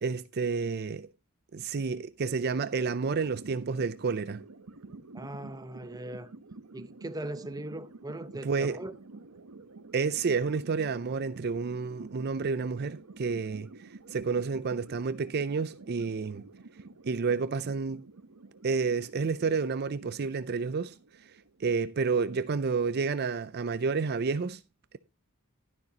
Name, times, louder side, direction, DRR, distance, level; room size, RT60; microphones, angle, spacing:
voice 1, 0.0-1.1 1.5-4.4 8.4-8.8 9.9-16.4 17.0-18.0 18.6-21.3 21.6-24.6, right 5 dB, 45° right, 0.5 m, -30 dB
sound 1, 2.5-22.0, right 3 dB, 85° right, 0.9 m, -50 dB
voice 2, 5.1-6.3 6.7-9.0, right 1 dB, 15° right, 0.8 m, -39 dB
12.0 x 10.5 x 2.9 m
head